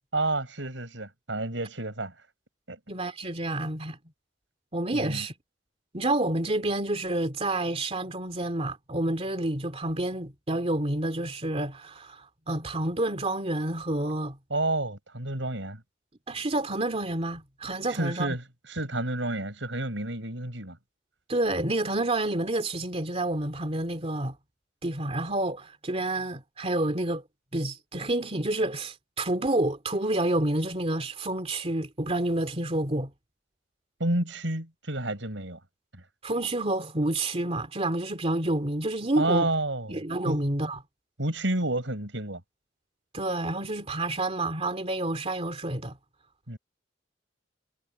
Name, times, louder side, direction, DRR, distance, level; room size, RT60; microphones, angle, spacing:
voice 1, 0.1-2.1 2.7-2.8 4.9-5.3 14.5-15.8 17.9-20.8 34.0-35.6 35.9-36.0 39.2-40.4 41.2-42.4 46.5-46.6, right 2 dB, 85° right, 6.0 m, -30 dB
voice 2, 2.9-4.0 4.7-5.3 5.9-14.4 16.3-18.4 21.3-24.4 24.8-27.2 27.5-33.1 36.2-39.5 39.9-40.8 43.1-46.0, right 1 dB, 35° right, 2.6 m, -29 dB
head